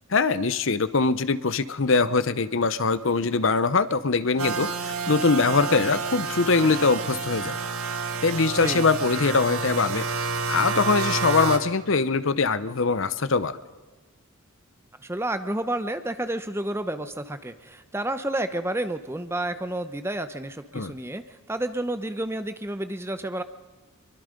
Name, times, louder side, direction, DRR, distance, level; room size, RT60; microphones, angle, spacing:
voice 1, 0.1-7.6 8.2-13.6 20.7-20.9, left 4 dB, 60° left, 15 dB, 0.8 m, -23 dB
sound 1, 4.4-11.6, right 4 dB, 80° right, 1.7 m, -29 dB
voice 2, 15.0-23.4, right 1 dB, 10° right, 10 dB, 0.8 m, -30 dB
24.0 x 23.0 x 5.2 m, 1.4 s
head